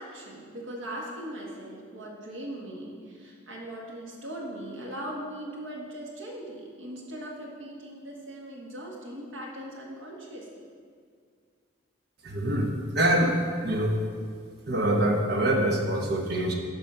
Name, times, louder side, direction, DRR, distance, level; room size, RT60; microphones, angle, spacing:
voice 1, 0.0-10.6, right 1 dB, 80° right, -2 dB, 1.7 m, -39 dB
voice 2, 12.2-14.0 14.7-16.5, right 1 dB, 50° right, 1 dB, 1.1 m, -25 dB
11.0 x 4.2 x 5.8 m, 2.1 s
head